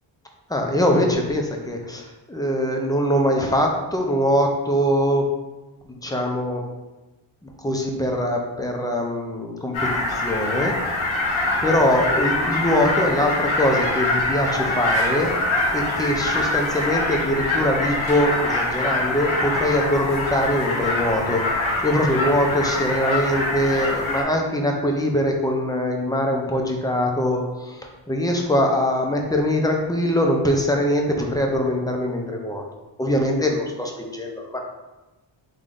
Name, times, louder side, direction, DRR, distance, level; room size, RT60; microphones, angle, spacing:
voice 1, 0.5-5.3 5.8-6.6 7.4-10.8 11.6-15.3 15.7-32.7 33.0-34.6, equal, 10° left, 1 dB, 0.6 m, -22 dB
sound 1, 9.7-24.2, left 2 dB, 75° left, 1.1 m, -24 dB
3.7 x 3.2 x 3.8 m, 1.1 s
cardioid pair, 90°, 48 cm